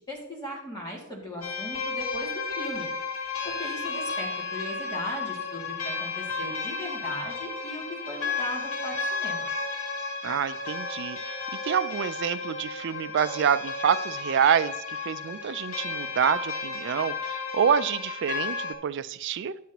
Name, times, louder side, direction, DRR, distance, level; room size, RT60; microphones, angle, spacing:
voice 1, 0.0-2.9 3.4-9.5, left 1 dB, 20° left, -4 dB, 2.3 m, -38 dB
sound 1, 1.4-18.7, left 4 dB, 80° left, 1.7 m, -33 dB
voice 2, 10.2-11.3 11.6-19.6, right 8 dB, 55° right, 15 dB, 0.3 m, -27 dB
10.0 x 7.4 x 2.9 m, 0.81 s
head